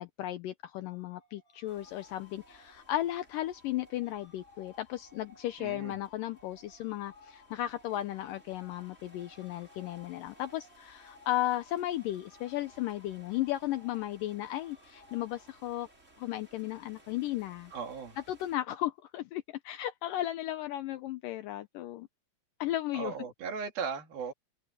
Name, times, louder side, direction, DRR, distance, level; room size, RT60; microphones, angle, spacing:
voice 1, 0.0-15.9 16.2-17.7 18.3-22.1 22.6-23.1, left 14 dB, 75° left, 2.2 m, -35 dB
sound 1, 0.7-16.0, left 3 dB, 55° left, 6.6 m, -59 dB
sound 2, 1.7-18.6, right 2 dB, 20° right, 5.7 m, -62 dB
voice 2, 5.6-6.0 17.7-18.2 22.9-24.3, right 6 dB, 75° right, 4.6 m, -37 dB
omnidirectional pair, 4.3 m